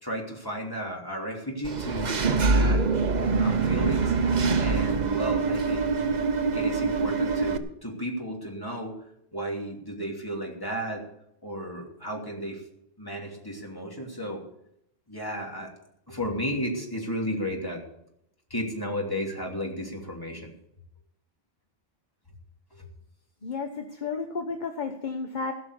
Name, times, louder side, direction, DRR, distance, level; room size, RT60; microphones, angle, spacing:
voice 1, 0.0-2.8 3.4-4.2 4.6-5.9 6.5-9.0 9.3-11.0 11.4-12.6 13.0-14.4 15.1-15.7 16.1-17.8 18.5-20.5 22.8-22.9, equal, 20° left, -1 dB, 3.0 m, -33 dB
Engine / Mechanisms, 1.6-7.6, right 4 dB, 45° right, 0.9 m, -24 dB
voice 2, 23.4-25.5, left 4 dB, 45° left, 6 dB, 1.1 m, -32 dB
17.0 x 6.3 x 8.1 m, 0.77 s
omnidirectional pair, 1.1 m